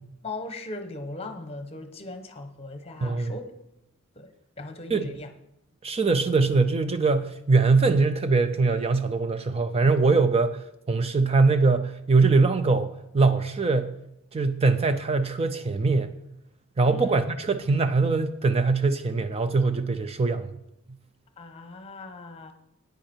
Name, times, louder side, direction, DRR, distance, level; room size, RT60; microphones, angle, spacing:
voice 1, 0.2-3.4 4.2-4.3 4.6-5.3 16.8-17.2 21.4-22.5, left 2 dB, 30° left, 1.1 m, -38 dB
voice 2, 3.0-3.3 4.9-5.1 5.8-12.9 13.1-13.9 14.3-16.1 16.8-20.5, right 3 dB, 30° right, 0.4 m, -22 dB
9.9 x 9.3 x 4.4 m
head